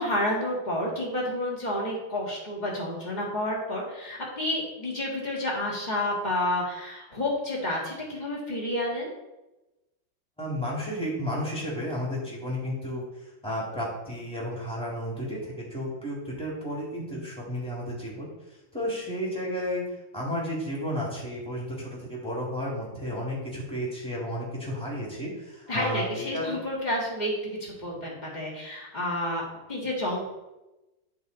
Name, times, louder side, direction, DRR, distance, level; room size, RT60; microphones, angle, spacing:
voice 1, 0.0-9.1 25.7-29.4 29.7-30.3, left 1 dB, 25° left, -4 dB, 1.9 m, -30 dB
voice 2, 10.4-18.3 18.7-26.6, equal, 5° left, -5 dB, 2.0 m, -32 dB
11.0 x 3.9 x 3.9 m, 1.0 s
omnidirectional pair, 2.1 m